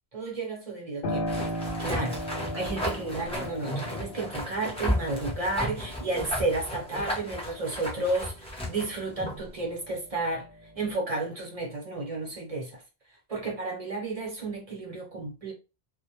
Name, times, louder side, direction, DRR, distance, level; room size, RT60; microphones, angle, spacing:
voice 1, 0.1-1.3 1.6-2.2 2.5-10.5 10.7-12.8 13.3-15.5, right 2 dB, 40° right, 0.8 m, -32 dB
Piano, 1.0-9.5 9.9-10.9, equal, 70° left, 0.7 m, -38 dB
sound 1, 1.3-9.5, equal, 5° left, 0.6 m, -34 dB
2.1 x 2.1 x 2.8 m
omnidirectional pair, 1.1 m